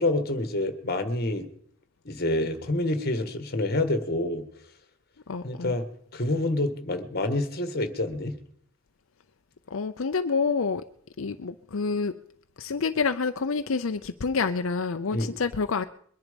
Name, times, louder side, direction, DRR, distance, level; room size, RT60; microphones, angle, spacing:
voice 1, 0.0-1.5 2.1-4.4 5.4-5.9 6.1-8.4 15.1-15.3, left 2 dB, 50° left, 9 dB, 1.7 m, -27 dB
voice 2, 5.3-5.7 9.7-10.8 11.2-12.1 12.6-15.8, left 4 dB, 80° left, 8 dB, 0.6 m, -28 dB
22.0 x 10.5 x 5.2 m, 0.64 s
head